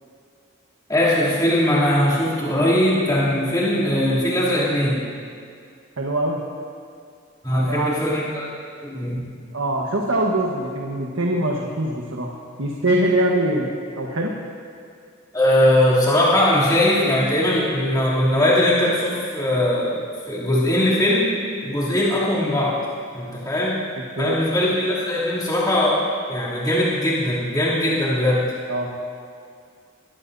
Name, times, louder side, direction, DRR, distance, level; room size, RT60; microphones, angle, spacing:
voice 1, 0.9-5.0 7.4-8.5 8.8-9.3 15.3-20.0 20.3-21.3 21.6-22.8 23.1-23.7 24.2-28.4, left 1 dB, 20° left, -9 dB, 2.9 m, -20 dB
voice 2, 6.0-6.4 7.5-8.0 9.5-12.3 12.6-13.7 14.0-14.3 24.1-24.4 28.7-28.9, right 1 dB, 85° right, -1 dB, 1.3 m, -23 dB
21.5 x 16.5 x 2.7 m, 2.2 s
head